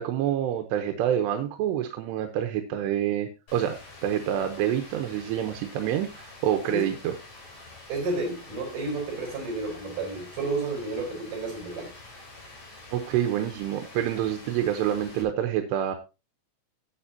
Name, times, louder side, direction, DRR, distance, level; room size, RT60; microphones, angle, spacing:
voice 1, 0.0-7.1 12.9-16.0, right 10 dB, 90° right, 5 dB, 3.1 m, -27 dB
Rain, 3.5-15.2, left 2 dB, 40° left, 4.4 m, -47 dB
voice 2, 7.9-11.9, right 2 dB, 60° right, 2 dB, 5.6 m, -31 dB
14.5 x 8.8 x 2.8 m, 0.29 s
omnidirectional pair, 4.8 m